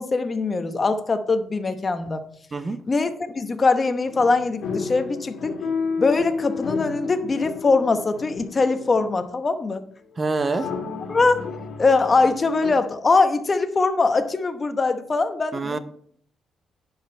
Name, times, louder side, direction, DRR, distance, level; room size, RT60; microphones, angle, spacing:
voice 1, 0.0-2.2 2.9-5.6 6.0-9.8 11.1-11.5 11.8-15.8, left 3 dB, 30° left, 0.9 m, -22 dB
voice 2, 2.5-2.8 10.2-10.7 15.5-15.8, right 3 dB, 30° right, 0.7 m, -26 dB
sound 1, 4.0-9.2 10.2-12.7, left 5 dB, 65° left, 2.0 m, -31 dB
10.0 x 5.3 x 4.3 m
cardioid pair, 90°, 0 cm